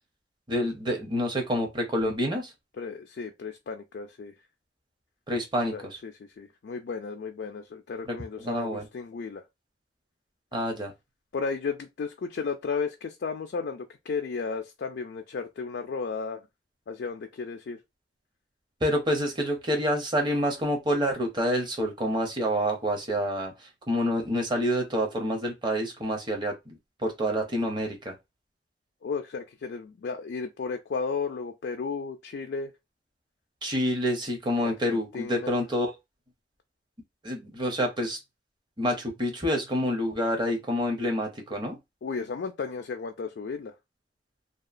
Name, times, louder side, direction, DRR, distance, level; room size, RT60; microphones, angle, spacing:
voice 1, 0.5-2.5 5.3-5.8 8.1-8.9 10.5-10.9 18.8-23.5 23.9-26.5 27.0-28.1 33.6-35.9 37.2-38.2 38.8-41.8, equal, 25° right, 0.7 m, -27 dB
voice 2, 2.8-4.3 5.7-9.4 11.3-16.4 16.9-17.8 29.0-32.7 34.6-35.5 42.0-43.7, left 5 dB, 65° left, 0.3 m, -34 dB
2.8 x 2.3 x 2.4 m
head